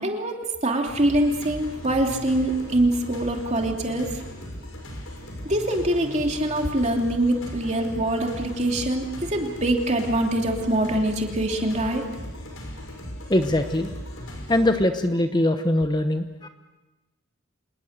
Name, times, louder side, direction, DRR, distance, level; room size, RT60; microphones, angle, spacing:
voice 1, 0.0-4.2 5.5-12.0, right 1 dB, 35° right, 2 dB, 2.9 m, -24 dB
sound 1, 1.0-14.7, equal, 90° left, 6.3 m, -38 dB
voice 2, 13.3-13.9 14.5-16.5, left 1 dB, 20° left, 7 dB, 1.0 m, -22 dB
27.0 x 20.0 x 6.7 m, 1.1 s
head